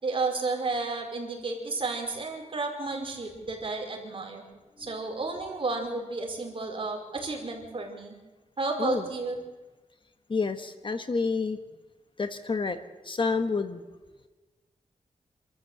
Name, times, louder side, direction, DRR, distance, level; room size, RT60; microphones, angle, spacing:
voice 1, 0.0-4.4 4.8-8.1 8.6-9.4, right 3 dB, 45° right, 1 dB, 5.2 m, -32 dB
voice 2, 8.8-9.1 10.3-11.6 12.2-12.8 13.0-13.8, left 4 dB, 40° left, 9 dB, 1.3 m, -29 dB
26.5 x 13.5 x 8.2 m, 1.2 s
wide cardioid pair, 120°, 13 cm